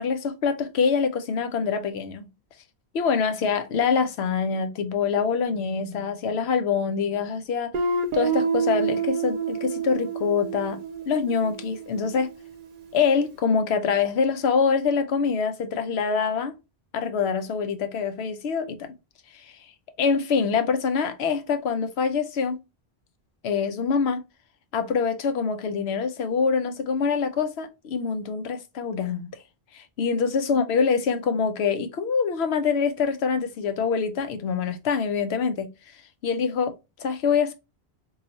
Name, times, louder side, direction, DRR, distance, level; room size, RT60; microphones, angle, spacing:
voice 1, 0.0-2.3 2.9-7.8 8.1-10.8 11.1-12.3 12.9-16.5 16.9-18.9 19.3-19.5 20.0-22.6 23.4-24.2 24.7-29.3 29.7-35.7 36.2-36.7 37.0-37.5, left 5 dB, 85° left, 0.9 m, -25 dB
Guitar, 7.7-12.4, right 5 dB, 55° right, 0.7 m, -28 dB
2.8 x 2.3 x 3.9 m
omnidirectional pair, 1.1 m